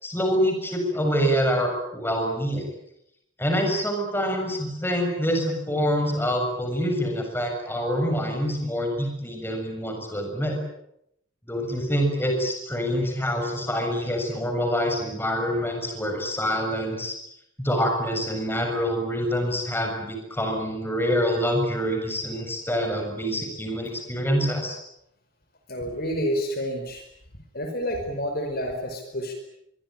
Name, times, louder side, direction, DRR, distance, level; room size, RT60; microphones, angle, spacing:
voice 1, 0.0-2.7 3.4-10.6 11.5-17.1 17.6-24.8, equal, 10° left, 3 dB, 6.9 m, -26 dB
voice 2, 25.7-27.0 27.5-29.3, equal, 50° left, 5 dB, 5.1 m, -29 dB
24.0 x 23.5 x 9.1 m, 0.77 s
head